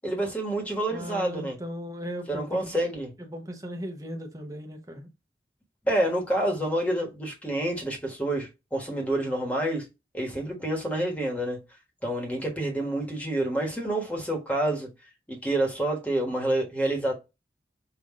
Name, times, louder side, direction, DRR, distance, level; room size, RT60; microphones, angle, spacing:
voice 1, 0.0-1.6 2.3-3.1 5.8-9.9 10.1-11.6 12.0-14.9 15.3-17.1, right 1 dB, 10° left, 1.3 m, -28 dB
voice 2, 0.9-2.8 3.2-5.1, equal, 20° right, 0.8 m, -37 dB
5.6 x 2.6 x 3.6 m
head